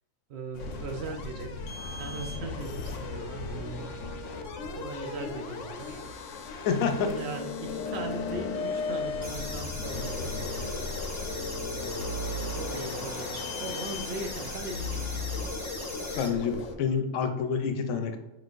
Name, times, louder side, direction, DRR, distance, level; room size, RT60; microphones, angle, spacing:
voice 1, 0.3-1.6 2.0-3.9 4.6-6.0 7.0-10.7 11.7-12.2 12.5-15.4, right 3 dB, 65° right, 4 dB, 0.7 m, -39 dB
sound 1, 0.5-16.8, left 3 dB, 70° left, 0.9 m, -36 dB
voice 2, 6.6-7.0 11.9-12.1 16.2-18.2, left 6 dB, 85° left, 7 dB, 1.0 m, -28 dB
sound 2, 9.2-16.3, left 2 dB, 15° left, 0.6 m, -40 dB
4.8 x 4.0 x 2.4 m, 1.0 s
omnidirectional pair, 1.4 m